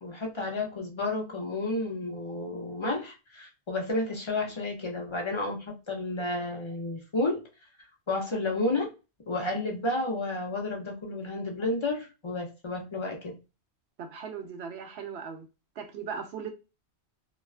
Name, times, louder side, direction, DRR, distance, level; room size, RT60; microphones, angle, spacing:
voice 1, 0.0-7.5 8.1-8.9 9.3-13.4, left 2 dB, 40° left, 0.4 m, -31 dB
voice 2, 14.0-15.5 15.8-16.5, right 6 dB, 80° right, 0.8 m, -38 dB
2.4 x 2.2 x 2.3 m
omnidirectional pair, 1.1 m